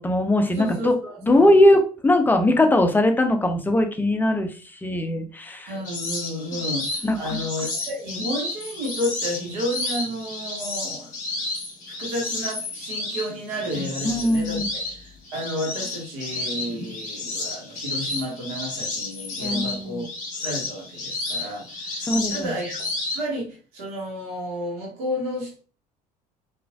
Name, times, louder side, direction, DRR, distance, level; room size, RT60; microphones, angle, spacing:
voice 1, 0.0-0.9 1.2-4.5 4.8-5.7 6.5-6.6 7.0-7.4 14.0-14.7 19.4-20.1 22.1-22.5, left 1 dB, 10° left, 5 dB, 0.5 m, -20 dB
voice 2, 0.6-1.5 5.7-11.1 11.9-20.0 20.4-22.9 23.1-25.6, equal, 70° right, -1 dB, 1.1 m, -31 dB
sound 1, 5.8-23.2, left 2 dB, 40° left, 1.0 m, -31 dB
3.1 x 2.4 x 2.4 m, 0.37 s
figure-of-eight pair, 60°, 20 cm